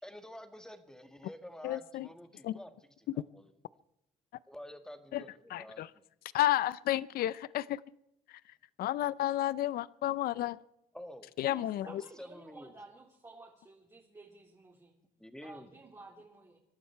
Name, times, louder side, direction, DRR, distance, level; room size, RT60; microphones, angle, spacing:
voice 1, 0.0-3.5 4.5-6.0 10.9-11.3 11.9-12.7 15.2-15.7, equal, 5° left, 7 dB, 1.9 m, -49 dB
voice 2, 1.6-2.1 2.4-2.6 5.1-5.2 5.5-5.9 6.3-7.8 8.8-10.6 11.4-11.9, left 14 dB, 60° left, 19 dB, 0.5 m, -31 dB
voice 3, 11.5-14.9 15.4-16.6, right 3 dB, 20° right, -3 dB, 3.3 m, -53 dB
25.0 x 12.0 x 4.5 m, 0.82 s
cardioid pair, 110°, 17 cm